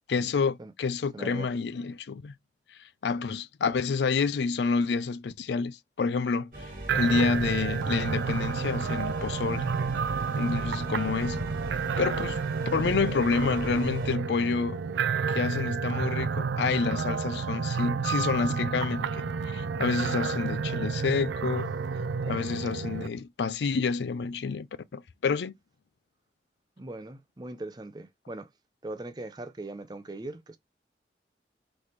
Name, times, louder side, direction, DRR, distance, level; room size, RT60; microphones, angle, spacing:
voice 1, 0.1-2.3 3.0-6.5 6.9-9.7 10.4-11.5 12.0-12.4 12.7-14.8 15.3-21.7 22.3-25.5, left 5 dB, 75° left, 0.4 m, -28 dB
voice 2, 1.1-1.5 26.8-28.5 28.8-30.6, right 2 dB, 25° right, 0.5 m, -40 dB
sound 1, 6.5-14.2, right 1 dB, 50° right, 1.5 m, -41 dB
sound 2, 6.9-23.1, right 5 dB, 90° right, 0.4 m, -30 dB
4.1 x 3.3 x 3.1 m
head